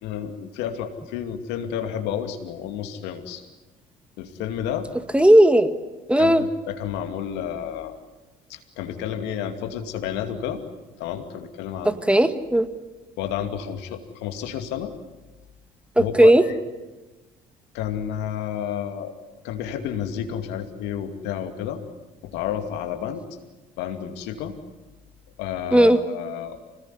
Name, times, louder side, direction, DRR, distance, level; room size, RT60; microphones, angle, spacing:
voice 1, 0.0-3.5 4.2-4.9 6.2-8.0 8.5-10.7 11.0-12.2 13.2-14.9 16.0-16.6 17.7-19.1 19.4-21.8 22.2-23.3 23.8-24.6 25.4-26.6, left 9 dB, 75° left, 7 dB, 2.5 m, -31 dB
voice 2, 5.1-5.7 6.1-6.4 11.9-12.7 16.0-16.4 25.7-26.0, right 1 dB, 5° right, 10 dB, 2.0 m, -15 dB
25.5 x 19.5 x 9.8 m, 1.1 s
hypercardioid pair, 60°, 18 cm